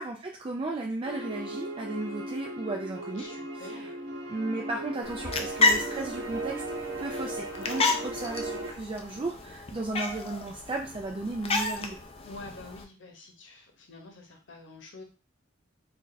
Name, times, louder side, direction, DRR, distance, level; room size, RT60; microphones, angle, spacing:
voice 1, 0.0-3.2 3.6-3.9 4.3-6.6 7.0-12.0, right 2 dB, 25° right, 1 dB, 0.4 m, -35 dB
sound 1, 1.0-8.7, right 1 dB, 60° right, 0.9 m, -37 dB
voice 2, 3.1-4.0 7.6-8.0 12.2-15.0, left 3 dB, 70° left, 3 dB, 0.9 m, -47 dB
sound 2, 5.0-12.8, left 3 dB, 30° left, 0.5 m, -31 dB
3.2 x 2.5 x 3.9 m, 0.34 s
head